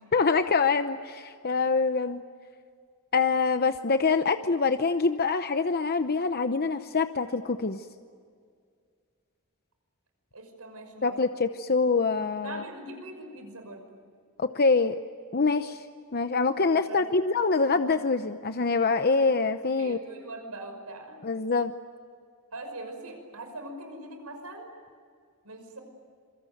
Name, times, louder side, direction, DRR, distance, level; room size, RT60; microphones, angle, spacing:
voice 1, 0.1-2.2 3.1-7.9 11.0-12.6 14.4-14.9 15.3-15.8 16.1-20.0 21.2-21.7, left 4 dB, 45° left, 9 dB, 0.8 m, -25 dB
voice 2, 10.3-11.1 12.4-14.0 16.7-17.0 17.7-17.8 19.8-21.2 22.5-24.7 25.4-25.8, right 2 dB, 85° right, 5 dB, 5.8 m, -42 dB
26.5 x 24.0 x 9.3 m, 2.1 s
head